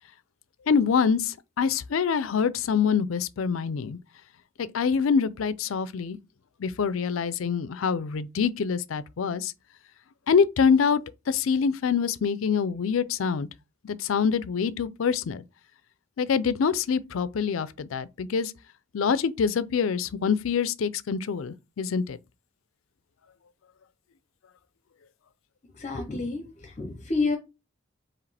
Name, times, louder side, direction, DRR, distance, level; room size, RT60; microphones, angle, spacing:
voice 1, 0.7-4.0 4.6-6.2 6.6-9.5 10.3-11.0 11.3-13.5 13.8-15.4 16.2-18.5 18.9-22.2, left 6 dB, 85° left, 0.4 m, -25 dB
voice 2, 25.8-26.4 26.8-27.4, left 3 dB, 35° left, 0.6 m, -28 dB
4.8 x 3.0 x 3.3 m
head